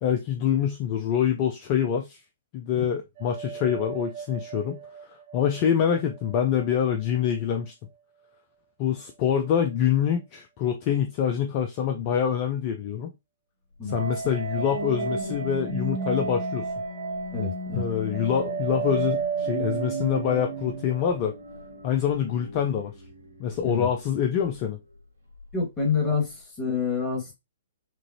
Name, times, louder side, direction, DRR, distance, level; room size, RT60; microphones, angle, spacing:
voice 1, 0.0-2.2 2.5-7.7 8.8-13.1 13.8-16.7 17.7-21.3 21.8-22.9 23.4-24.8, left 8 dB, 35° left, 0.6 m, -25 dB
sound 1, 3.2-6.4 6.6-6.7 13.9-21.8, right 6 dB, 50° right, 1.2 m, -34 dB
voice 2, 13.8-14.1 17.3-17.8 23.6-23.9 25.5-27.3, left 5 dB, 15° left, 2.0 m, -28 dB
sound 2, 14.2-24.8 25.3-25.6, right 1 dB, 80° right, 1.9 m, -37 dB
6.0 x 2.6 x 2.9 m
figure-of-eight pair, 120°, 0 cm